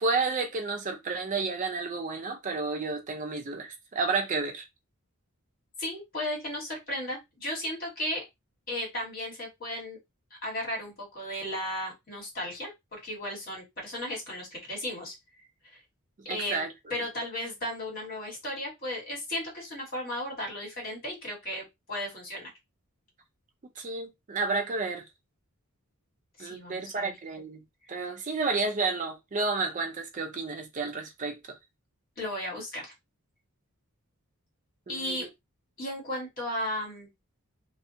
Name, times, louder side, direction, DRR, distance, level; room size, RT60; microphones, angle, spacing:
voice 1, 0.0-4.6 16.3-16.7 23.8-25.0 26.4-27.6 27.9-31.6 34.9-35.3, right 4 dB, 35° right, 0.4 m, -31 dB
voice 2, 5.8-8.2 8.7-10.0 10.4-15.1 15.7-15.8 16.2-16.6 16.9-22.5 26.4-27.1 28.0-28.1 32.2-32.9 34.9-35.3 35.8-37.1, left 1 dB, 40° left, 1.5 m, -35 dB
2.4 x 2.3 x 2.7 m
head